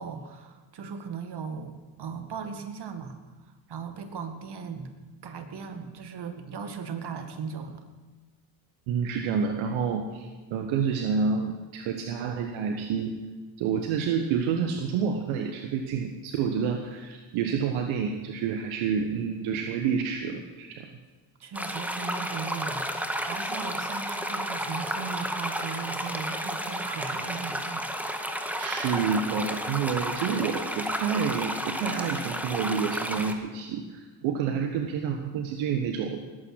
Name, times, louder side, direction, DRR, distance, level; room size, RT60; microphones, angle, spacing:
voice 1, 0.0-3.2 3.7-5.0 5.2-7.8 21.4-27.9, right 6 dB, 55° right, 7 dB, 2.1 m, -38 dB
voice 2, 8.9-13.1 13.6-20.9 28.6-36.2, right 6 dB, 75° right, 4 dB, 1.2 m, -29 dB
sound 1, 21.5-33.3, equal, 5° right, 1.8 m, -32 dB
20.0 x 8.9 x 6.3 m, 1.3 s
hypercardioid pair, 50°, 48 cm